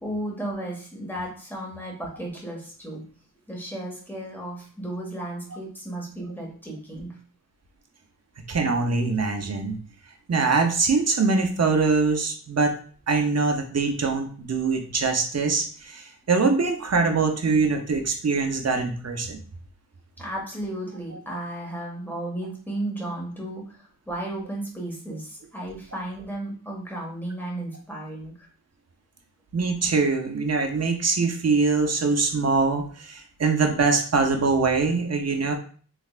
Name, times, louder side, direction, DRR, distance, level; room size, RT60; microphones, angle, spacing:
voice 1, 0.0-3.0 3.5-7.2 20.2-28.5, right 1 dB, 5° left, -2 dB, 1.7 m, -34 dB
voice 2, 8.5-9.8 10.3-12.8 13.1-19.4 29.5-35.5, right 4 dB, 40° right, 4 dB, 0.8 m, -23 dB
3.3 x 3.2 x 2.4 m, 0.43 s
cardioid pair, 45°, 39 cm